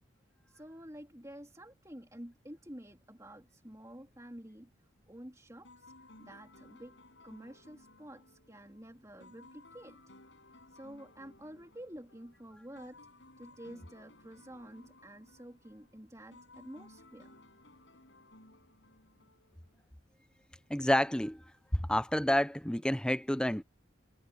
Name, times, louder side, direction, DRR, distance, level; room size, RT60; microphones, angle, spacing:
voice 1, 0.5-4.7 5.1-5.9 6.2-7.0 7.2-10.0 10.7-13.0 13.4-17.3, right 1 dB, 15° right, 3.5 m, -50 dB
sound 1, 5.6-19.9, left 2 dB, 70° left, 5.8 m, -59 dB
voice 2, 20.7-21.4 21.7-23.6, left 1 dB, 5° left, 0.7 m, -29 dB
head